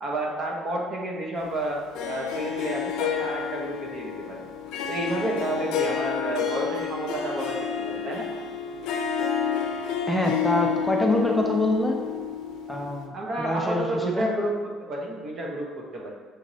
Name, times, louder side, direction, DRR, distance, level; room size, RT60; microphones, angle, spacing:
voice 1, 0.0-1.8 2.1-4.4 4.9-8.3 13.1-16.1, right 1 dB, 50° right, -1 dB, 1.0 m, -30 dB
Harp, 1.9-13.1, left 8 dB, 85° left, 0.4 m, -30 dB
voice 2, 10.1-11.9 12.7-13.1 13.4-14.3, left 1 dB, 5° left, 0 dB, 0.5 m, -25 dB
6.2 x 3.1 x 2.7 m, 1.4 s
cardioid pair, 100°, 0 cm